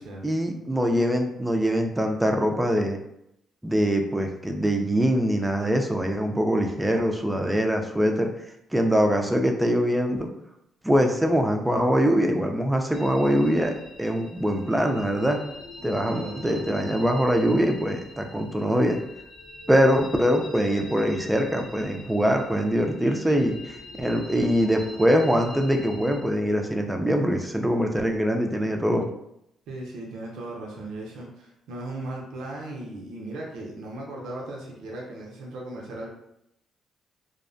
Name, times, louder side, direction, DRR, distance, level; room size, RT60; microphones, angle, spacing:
voice 1, 0.2-3.0 3.6-8.3 8.7-10.3 10.8-13.7 14.0-15.4 15.8-19.0 19.7-29.1, equal, 10° right, 3 dB, 0.4 m, -23 dB
sound 1, 12.9-26.2, left 1 dB, 90° left, 0.9 m, -43 dB
voice 2, 16.1-16.7 29.7-36.1, right 2 dB, 80° right, -2 dB, 0.5 m, -37 dB
2.5 x 2.1 x 2.5 m, 0.79 s
cardioid pair, 90°, 0 cm